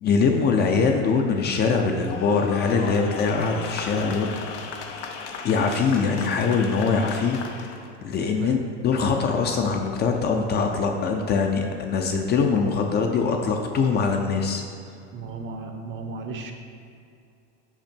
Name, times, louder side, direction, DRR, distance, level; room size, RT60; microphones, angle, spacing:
voice 1, 0.0-4.3 5.4-7.7 8.0-14.6, left 5 dB, 30° left, 3 dB, 0.5 m, -23 dB
sound 1, 1.9-7.9, left 5 dB, 85° left, 0.9 m, -36 dB
voice 2, 15.1-16.5, right 4 dB, 35° right, 4 dB, 0.7 m, -35 dB
5.8 x 5.1 x 4.4 m, 2.5 s
supercardioid pair, 125°, 34 cm